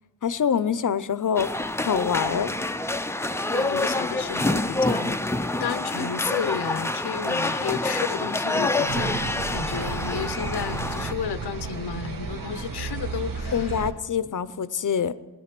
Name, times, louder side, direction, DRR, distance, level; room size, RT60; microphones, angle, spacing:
voice 1, 0.2-1.5 1.8-2.5 13.5-15.1, left 7 dB, 55° left, 15 dB, 0.6 m, -25 dB
sound 1, 1.4-11.1, left 2 dB, 5° left, 0.4 m, -27 dB
voice 2, 3.3-13.9, left 7 dB, 90° left, 13 dB, 0.7 m, -32 dB
sound 2, 8.9-13.9, right 4 dB, 60° right, 1.1 m, -33 dB
17.0 x 11.0 x 5.9 m, 1.2 s
wide cardioid pair, 100°, 38 cm